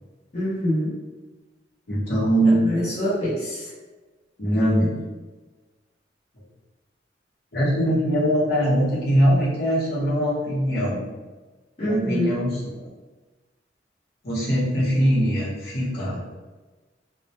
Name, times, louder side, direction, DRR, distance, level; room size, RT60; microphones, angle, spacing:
voice 1, 0.3-1.0 2.4-3.7 11.8-12.3, equal, 35° left, -10 dB, 0.6 m, -25 dB
voice 2, 1.9-2.7 4.4-4.9 7.5-11.1 11.8-12.6 14.2-16.2, equal, 60° left, -8 dB, 0.9 m, -21 dB
2.2 x 2.1 x 2.7 m, 1.2 s
head